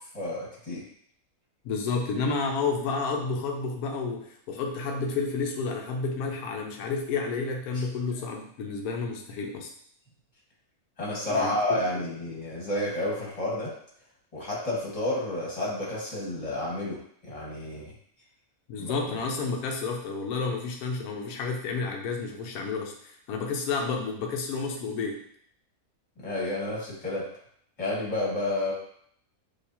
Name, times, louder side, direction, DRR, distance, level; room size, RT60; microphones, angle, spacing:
voice 1, 0.1-0.8 7.7-7.8 11.0-13.7 14.3-17.0 17.2-17.9 18.8-19.0 26.2-27.2 27.8-28.7, left 1 dB, 25° left, -5 dB, 1.6 m, -30 dB
voice 2, 1.6-9.7 11.3-12.1 18.7-25.2, left 4 dB, 85° left, 2 dB, 1.2 m, -31 dB
6.4 x 2.8 x 2.8 m, 0.65 s
omnidirectional pair, 1.6 m